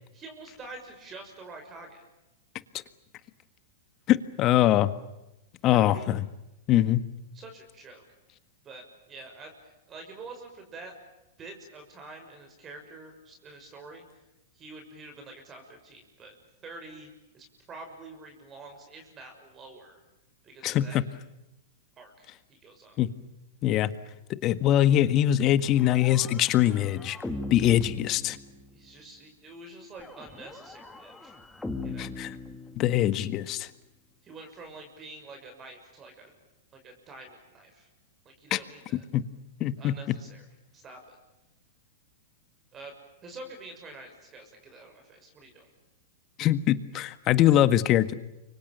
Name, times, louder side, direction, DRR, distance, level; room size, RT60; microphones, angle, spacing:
voice 1, 0.1-2.0 5.6-6.1 7.3-8.0 8.6-10.9 11.4-14.0 14.5-16.3 16.6-20.0 20.4-21.0 22.0-23.0 28.7-31.4 31.8-32.1 34.2-36.3 36.7-37.9 38.2-39.0 39.8-40.4 40.7-41.2 42.7-42.9 43.2-45.7, right 2 dB, 25° right, 5 dB, 6.3 m, -47 dB
voice 2, 4.1-4.9 5.6-6.2 6.7-7.0 20.6-21.0 23.0-23.1 23.6-23.9 24.4-27.2 27.5-28.4 32.0-32.3 32.8-33.7 38.5-38.6 39.1-39.2 39.6-39.9 46.4-48.1, left 12 dB, 35° left, 13 dB, 1.7 m, -23 dB
sound 1, 25.6-28.9 30.0-33.3, left 2 dB, 10° left, 2.6 m, -40 dB
30.0 x 25.0 x 6.9 m, 0.95 s
hypercardioid pair, 120°, 0 cm